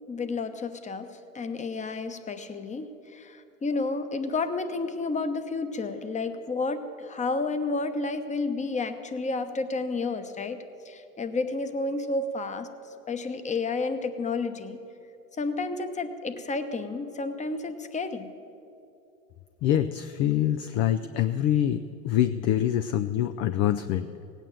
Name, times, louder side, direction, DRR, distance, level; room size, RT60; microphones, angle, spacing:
voice 1, 0.1-10.6 10.9-12.7 13.1-14.8 15.4-18.3, left 3 dB, 15° left, 9 dB, 1.0 m, -31 dB
voice 2, 19.6-24.1, left 11 dB, 35° left, 10 dB, 0.5 m, -25 dB
17.0 x 9.1 x 7.6 m, 2.7 s
hypercardioid pair, 95°, 43 cm